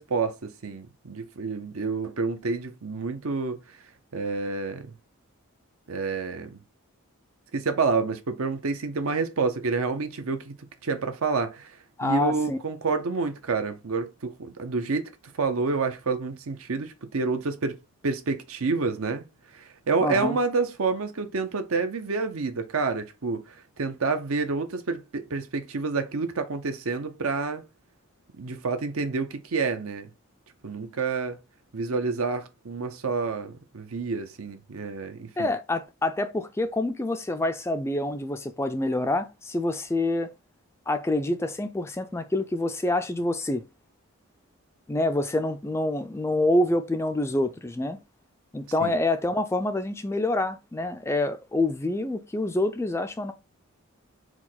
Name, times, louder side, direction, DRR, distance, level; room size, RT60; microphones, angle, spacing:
voice 1, 0.0-3.6 4.1-4.9 5.9-6.6 7.5-10.5 10.8-11.7 12.0-15.1 15.4-17.8 18.0-19.2 19.5-27.6 28.4-30.1 30.6-31.4 31.7-35.5 48.8-48.9, right 4 dB, 80° right, 0.7 m, -28 dB
voice 2, 12.0-12.6 20.0-20.4 35.4-40.3 40.9-43.6 44.9-48.0 48.5-53.3, left 2 dB, 10° left, 0.3 m, -27 dB
4.6 x 2.2 x 4.0 m
head